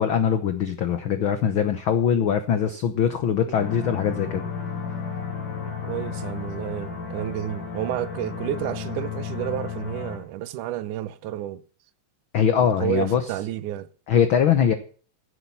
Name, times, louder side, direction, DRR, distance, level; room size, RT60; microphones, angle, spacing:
voice 1, 0.0-4.4 12.3-13.2 14.1-14.7, left 8 dB, 60° left, 1.3 m, -22 dB
sound 1, 3.6-10.2, left 6 dB, 85° left, 5.1 m, -33 dB
voice 2, 5.8-11.6 12.6-13.9, right 12 dB, 85° right, 2.3 m, -30 dB
15.5 x 8.1 x 5.9 m
omnidirectional pair, 3.5 m